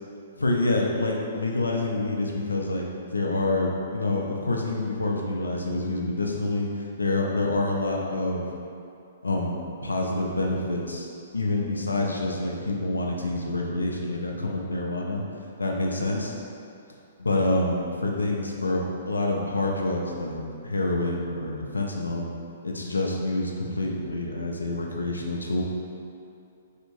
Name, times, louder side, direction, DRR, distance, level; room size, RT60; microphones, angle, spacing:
voice 1, 0.4-2.9 3.1-6.7 7.0-8.4 9.2-11.1 11.3-15.2 15.6-16.4 17.2-22.3 22.6-25.6, left 2 dB, 85° left, 0 dB, 0.5 m, -27 dB
3.3 x 2.8 x 2.9 m, 2.6 s
figure-of-eight pair, 120°, 0 cm